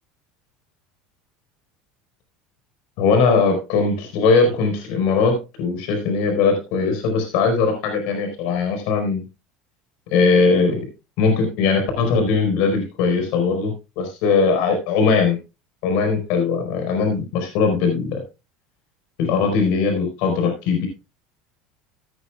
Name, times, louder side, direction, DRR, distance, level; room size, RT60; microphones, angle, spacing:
voice 1, 3.0-9.2 10.1-10.9 11.2-15.4 15.8-18.2 19.2-20.9, left 4 dB, 70° left, 5 dB, 4.6 m, -20 dB
16.5 x 10.0 x 2.3 m, 0.27 s
supercardioid pair, 115°, 2 cm